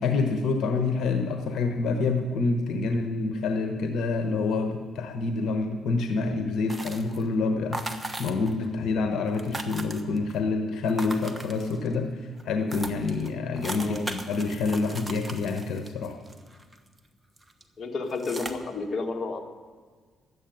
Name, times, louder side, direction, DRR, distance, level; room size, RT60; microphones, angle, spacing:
voice 1, 0.0-16.2, left 3 dB, 75° left, 6 dB, 1.1 m, -27 dB
sound 1, 6.7-7.3 7.7-8.7 8.9-9.0 9.2-10.3 10.9-11.9 12.4-12.5 12.7-17.0 17.4-17.6 18.1-18.5, right 2 dB, 15° right, 1.2 m, -38 dB
voice 2, 13.8-14.1 17.8-19.4, left 3 dB, 45° left, 3 dB, 1.7 m, -31 dB
12.5 x 8.3 x 9.2 m, 1.6 s
cardioid pair, 90°, 0 cm